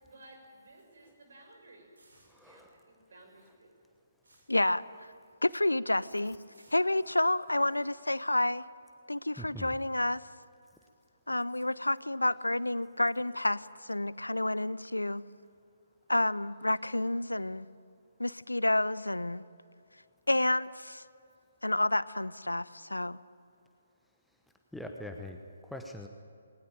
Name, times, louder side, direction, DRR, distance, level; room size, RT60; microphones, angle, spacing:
voice 1, 0.0-1.9 2.4-3.7, right 2 dB, 55° right, 2 dB, 6.7 m, -56 dB
sound 1, 1.9-3.1 3.4-5.4 5.7-6.0 6.5-8.4, right 1 dB, 75° right, 6.6 m, -66 dB
voice 2, 2.3-2.7 9.4-9.7 24.7-26.1, left 1 dB, ahead, 3 dB, 1.0 m, -43 dB
voice 3, 4.5-4.8 5.4-6.4 6.7-8.6 9.1-10.2 11.3-15.2 16.1-17.7 18.2-19.4 20.3-21.0 21.6-23.2, left 1 dB, 80° left, 20 dB, 0.6 m, -29 dB
20.5 x 19.0 x 9.0 m, 2.5 s
figure-of-eight pair, 135°, 0 cm